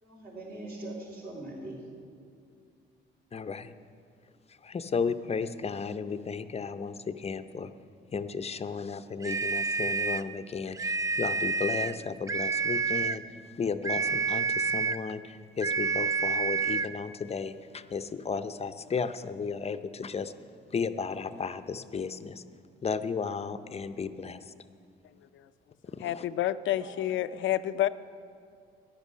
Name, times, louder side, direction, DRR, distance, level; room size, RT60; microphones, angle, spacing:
voice 1, 0.0-1.8 26.7-26.9, right 2 dB, 50° right, -2 dB, 3.9 m, -41 dB
voice 2, 3.3-3.6 4.7-6.9 7.2-7.7 8.1-10.8 11.2-13.2 13.6-14.4 14.7-15.2 15.6-17.5 17.9-20.2 20.7-22.3 22.8-24.4, left 5 dB, 30° left, 10 dB, 0.6 m, -33 dB
sound 1, 9.2-10.3 10.7-12.0 12.3-13.2 13.8-15.1 15.6-17.0, right 4 dB, 15° right, 0.4 m, -29 dB
voice 3, 26.0-27.9, left 13 dB, 75° left, 13 dB, 0.5 m, -29 dB
14.0 x 10.5 x 6.2 m, 2.5 s
cardioid pair, 90°, 20 cm